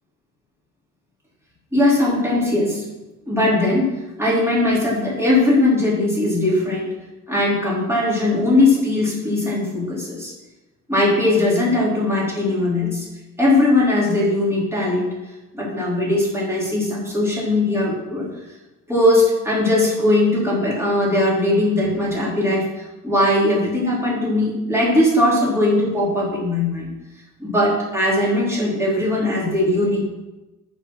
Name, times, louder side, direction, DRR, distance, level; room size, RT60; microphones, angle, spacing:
voice 1, 1.7-2.8 3.3-3.8 4.2-6.9 7.3-10.3 10.9-13.1 13.4-15.1 15.5-18.3 18.9-22.6 23.0-26.9 27.4-30.0, left 1 dB, 10° right, -6 dB, 3.3 m, -19 dB
9.2 x 5.5 x 6.1 m, 1.1 s
wide cardioid pair, 160°, 32 cm